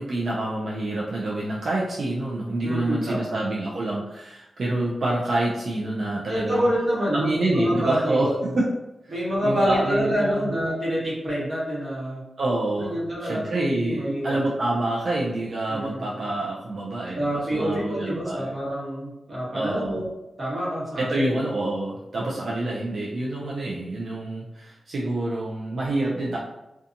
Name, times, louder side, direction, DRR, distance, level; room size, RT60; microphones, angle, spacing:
voice 1, 0.0-6.7 7.1-8.7 9.4-10.5 12.4-18.5 19.5-20.0 21.0-26.4, right 2 dB, 60° right, -5 dB, 0.4 m, -27 dB
voice 2, 2.6-3.4 5.9-8.6 9.1-12.2 12.8-14.4 15.7-16.3 17.1-20.1 20.4-21.4 22.1-22.5, equal, 30° right, -8 dB, 1.2 m, -27 dB
2.7 x 2.3 x 2.5 m, 0.94 s
wide cardioid pair, 165°, 0 cm